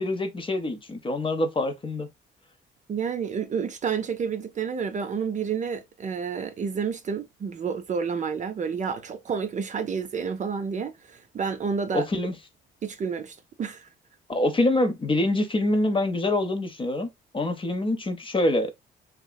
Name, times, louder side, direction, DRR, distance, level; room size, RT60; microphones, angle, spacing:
voice 1, 0.0-2.1 11.9-12.3 14.3-17.1 17.3-18.7, left 1 dB, 25° left, 0.6 m, -25 dB
voice 2, 2.9-12.1 12.8-13.9, right 6 dB, 40° right, 0.5 m, -30 dB
2.7 x 2.4 x 2.2 m
cardioid pair, 90°, 20 cm